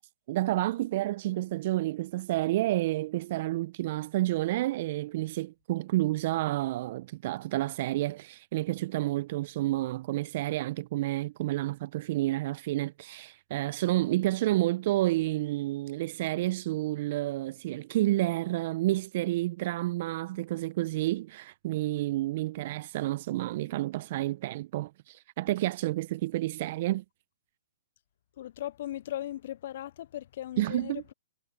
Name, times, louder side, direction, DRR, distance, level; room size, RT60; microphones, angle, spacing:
voice 1, 0.3-27.0 30.6-31.0, right 16 dB, 45° right, 0.8 m, -30 dB
voice 2, 28.4-31.1, left 12 dB, 50° left, 0.7 m, -38 dB
figure-of-eight pair, 130°, 0 cm